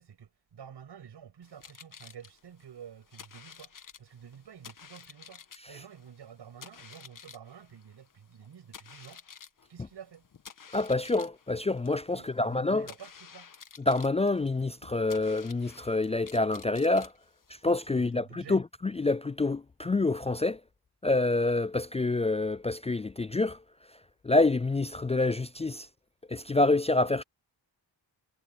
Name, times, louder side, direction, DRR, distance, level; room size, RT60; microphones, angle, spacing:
voice 1, 0.0-9.2 9.7-10.3 12.1-13.5 17.9-18.6, right 8 dB, 85° right, 7.2 m, -50 dB
sound 1, 1.4-17.9, left 7 dB, 50° left, 1.4 m, -52 dB
voice 2, 10.7-12.9 13.9-17.1 17.6-20.6 21.0-23.6 24.2-25.9 26.3-27.2, left 2 dB, 15° left, 0.3 m, -27 dB
cardioid pair, 80°, 40 cm